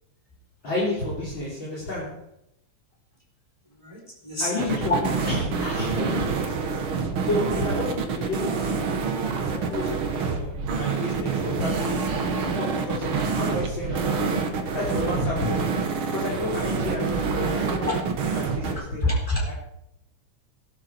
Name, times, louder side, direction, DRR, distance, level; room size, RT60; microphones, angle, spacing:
voice 1, 0.6-2.2 4.4-6.8 7.2-9.1 9.4-12.2 12.6-14.4 14.7-15.7 16.1-19.1 19.5-19.6, left 2 dB, 40° left, -5 dB, 3.9 m, -31 dB
voice 2, 3.8-4.5 17.8-18.0 18.6-19.5, left 1 dB, 10° left, -1 dB, 4.1 m, -27 dB
sound 1, 4.6-18.7, right 5 dB, 50° right, 2.1 m, -27 dB
16.5 x 12.0 x 4.6 m, 0.80 s
omnidirectional pair, 3.4 m